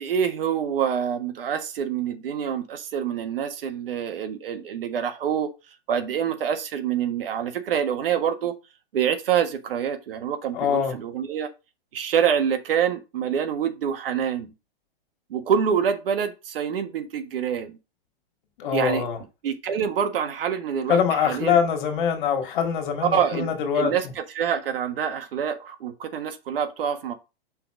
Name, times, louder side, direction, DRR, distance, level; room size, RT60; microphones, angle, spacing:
voice 1, 0.0-5.5 5.9-8.5 8.9-11.5 11.9-14.5 15.3-17.8 18.7-19.0 19.4-21.6 23.0-27.1, right 8 dB, 65° right, 1.4 m, -26 dB
voice 2, 10.5-10.9 18.6-19.2 20.9-23.9, left 7 dB, 55° left, 2.2 m, -23 dB
5.7 x 4.0 x 5.0 m
hypercardioid pair, 145°, 30 cm